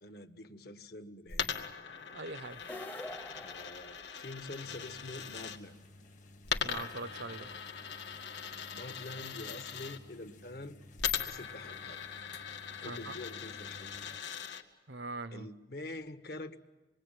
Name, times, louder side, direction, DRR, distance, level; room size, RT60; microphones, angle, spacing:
voice 1, 0.0-1.7 3.4-5.8 8.7-10.8 11.2-12.0 12.8-13.9 15.3-16.6, left 2 dB, 60° left, 1.5 m, -46 dB
Coin (dropping), 1.3-5.6 6.4-10.0 11.0-14.6, left 7 dB, 80° left, 2.0 m, -40 dB
voice 2, 2.1-2.6 6.6-7.5 12.8-13.1 14.9-15.5, right 3 dB, 75° right, 1.0 m, -42 dB
sound 1, 2.6-4.6, left 1 dB, 10° left, 0.8 m, -46 dB
sound 2, 4.6-14.2, left 2 dB, 45° left, 1.4 m, -55 dB
26.5 x 23.0 x 9.1 m
head